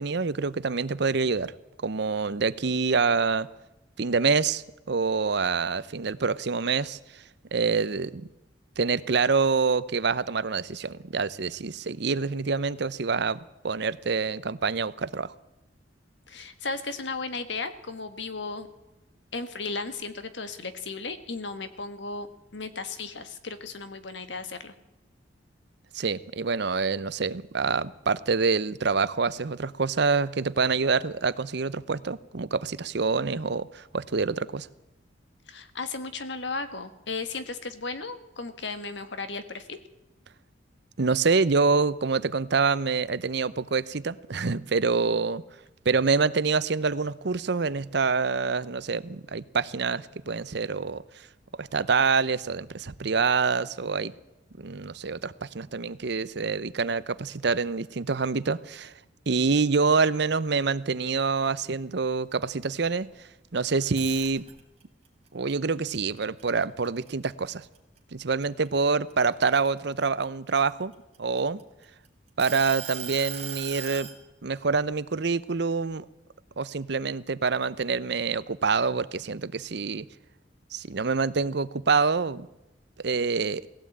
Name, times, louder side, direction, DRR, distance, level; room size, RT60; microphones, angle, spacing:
voice 1, 0.0-1.5 1.8-3.5 4.0-7.2 7.5-8.3 8.8-15.3 25.9-34.7 41.0-45.4 45.8-51.0 51.6-54.1 54.6-58.9 59.3-63.1 63.5-64.5 65.3-67.6 68.1-70.9 71.2-71.6 72.4-74.1 74.4-76.1 76.6-80.1 80.7-82.5 83.0-83.6, right 4 dB, 65° right, 0.7 m, -26 dB
voice 2, 16.3-18.7 19.3-22.3 22.5-24.7 35.5-39.8 59.5-59.6, left 3 dB, 70° left, 1.7 m, -35 dB
sound 1, 63.8-64.8 65.3-67.1 67.5-67.8 68.2-70.0 70.7-71.8 72.4-74.2, right 9 dB, 35° right, 2.9 m, -38 dB
19.5 x 16.0 x 8.7 m
head